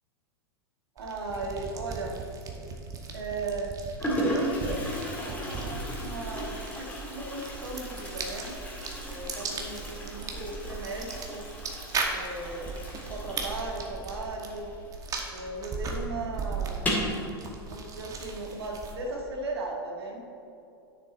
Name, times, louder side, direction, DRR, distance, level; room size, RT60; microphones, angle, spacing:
voice 1, 0.9-2.2 3.1-3.8 4.3-8.6 9.0-11.4 12.1-14.7 15.3-16.9 17.7-20.2, right 2 dB, 90° right, 0 dB, 1.6 m, -37 dB
sound 1, 1.0-19.2, right 4 dB, 25° right, 1.2 m, -38 dB
Toilet flush, 2.5-3.0 3.7-3.8 4.0-15.3 15.5-15.6 15.9-16.0 16.7-17.2, equal, 10° left, 2.1 m, -35 dB
9.1 x 6.8 x 4.2 m, 2.6 s
hypercardioid pair, 120°, 13 cm